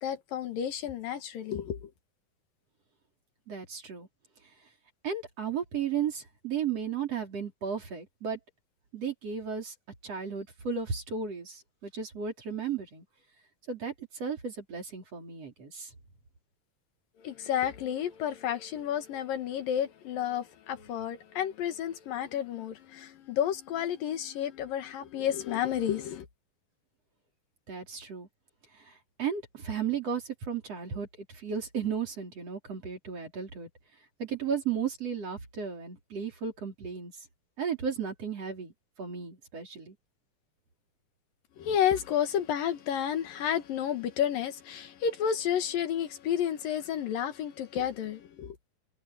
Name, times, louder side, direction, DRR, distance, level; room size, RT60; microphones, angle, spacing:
voice 1, 0.0-1.9 17.2-26.3 41.6-48.6, left 9 dB, 70° left, 3.2 m, -31 dB
voice 2, 3.5-4.1 5.0-8.4 8.9-9.7 10.0-13.1 13.7-15.9 27.7-28.3 28.7-33.7 34.2-37.1 37.6-38.7 39.0-40.0, right 7 dB, 45° right, 5.3 m, -34 dB
omnidirectional pair, 4.1 m